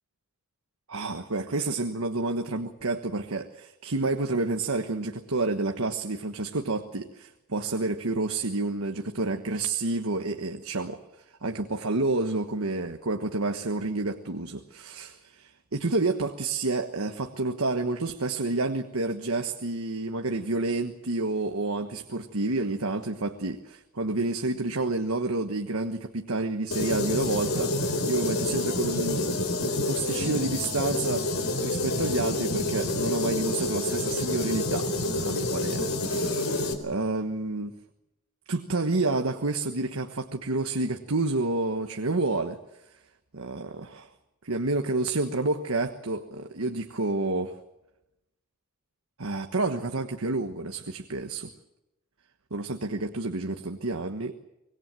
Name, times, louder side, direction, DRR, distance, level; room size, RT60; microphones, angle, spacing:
voice 1, 0.9-11.0 11.4-37.8 38.5-42.6 43.3-44.1 44.4-47.5 49.2-51.5 52.5-54.3, right 2 dB, 90° right, 6 dB, 1.4 m, -29 dB
sound 1, 26.7-36.7, left 2 dB, 75° left, 4.0 m, -28 dB
25.0 x 20.5 x 7.7 m, 0.90 s
head